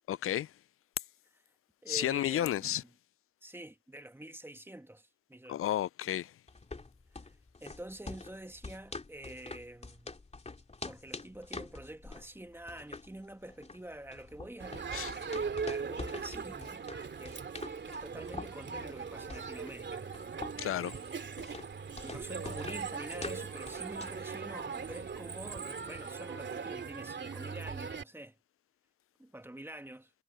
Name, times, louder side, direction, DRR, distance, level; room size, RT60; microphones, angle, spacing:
voice 1, 0.1-0.5 1.9-2.8 5.5-6.3 14.9-15.1 20.6-20.9, left 12 dB, 45° left, 0.5 m, -32 dB
voice 2, 1.8-2.9 3.4-5.6 7.2-10.2 10.8-16.8 17.2-17.4 17.9-20.3 22.0-28.4 29.2-30.1, right 1 dB, 10° right, 1.9 m, -47 dB
sound 1, 6.5-24.3, left 3 dB, 20° left, 2.8 m, -46 dB
Crowd, 14.6-28.0, right 5 dB, 35° right, 2.5 m, -40 dB
cardioid pair, 90°, 30 cm